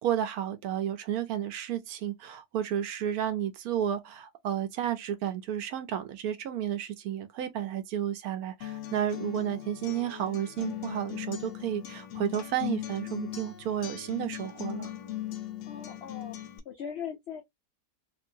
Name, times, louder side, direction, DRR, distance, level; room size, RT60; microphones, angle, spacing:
voice 1, 0.0-14.9, right 10 dB, 70° right, 1.0 m, -32 dB
Acoustic guitar, 8.6-16.6, left 12 dB, 65° left, 0.8 m, -39 dB
voice 2, 15.6-16.4 16.6-17.4, left 7 dB, 85° left, 0.5 m, -39 dB
2.8 x 2.5 x 2.6 m
omnidirectional pair, 1.7 m